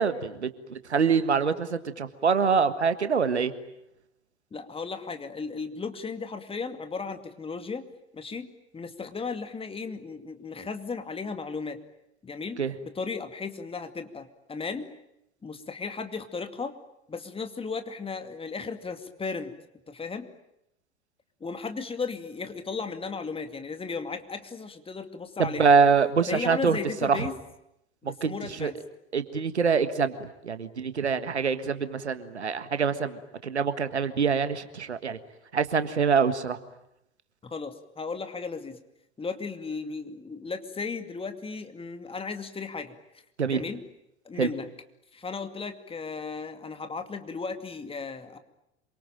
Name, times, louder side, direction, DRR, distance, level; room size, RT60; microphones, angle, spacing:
voice 1, 0.0-3.5 12.6-12.7 25.4-26.8 27.1-27.2 28.2-28.3 28.6-28.7 29.1-35.2 35.5-36.6 43.4-43.6 44.4-44.5, right 5 dB, 80° right, 12 dB, 1.6 m, -25 dB
voice 2, 4.5-7.9 8.1-8.5 8.7-11.8 12.2-14.9 15.4-16.7 17.1-19.5 19.9-20.3 21.4-25.7 26.3-27.4 28.0-28.8 37.4-38.8 39.2-43.0 43.4-43.8 44.2-44.7 45.1-48.4, left 4 dB, 15° left, 8 dB, 2.4 m, -35 dB
27.0 x 24.5 x 9.0 m, 0.82 s
figure-of-eight pair, 80°, 33 cm